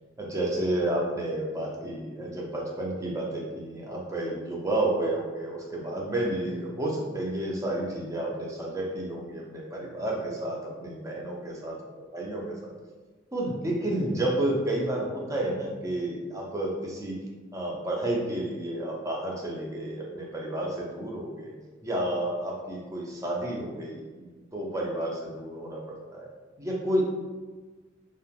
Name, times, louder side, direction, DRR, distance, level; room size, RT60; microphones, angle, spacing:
voice 1, 0.2-11.8 12.1-12.7 13.3-17.2 17.5-21.5 21.8-26.3 26.6-27.1, right 1 dB, 15° right, -3 dB, 0.4 m, -31 dB
3.0 x 2.1 x 2.3 m, 1.3 s
head